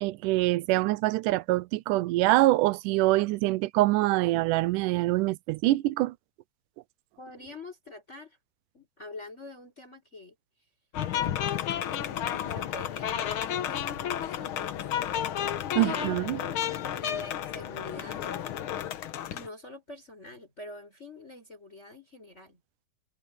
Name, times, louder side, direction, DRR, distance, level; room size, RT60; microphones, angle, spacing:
voice 1, 0.0-6.1 15.8-16.4, right 18 dB, 85° right, 2.1 m, -25 dB
voice 2, 7.2-8.4 8.7-10.4 12.3-14.9 15.8-16.6 16.9-18.3 19.3-22.6, left 2 dB, 20° left, 6.0 m, -46 dB
sound 1, 10.9-19.5, left 10 dB, 70° left, 1.2 m, -32 dB
omnidirectional pair, 3.7 m